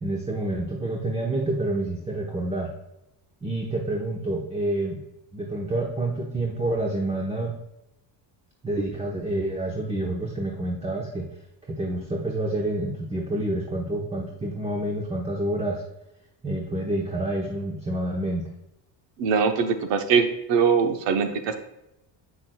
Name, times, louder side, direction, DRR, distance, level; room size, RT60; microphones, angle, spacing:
voice 1, 0.0-2.7 3.4-5.0 5.3-7.6 8.6-11.3 11.7-15.8 16.4-18.4, right 1 dB, 15° right, 0 dB, 0.9 m, -28 dB
voice 2, 19.2-21.5, right 6 dB, 70° right, 7 dB, 1.0 m, -22 dB
7.6 x 6.0 x 2.3 m, 0.87 s
cardioid pair, 105°, 44 cm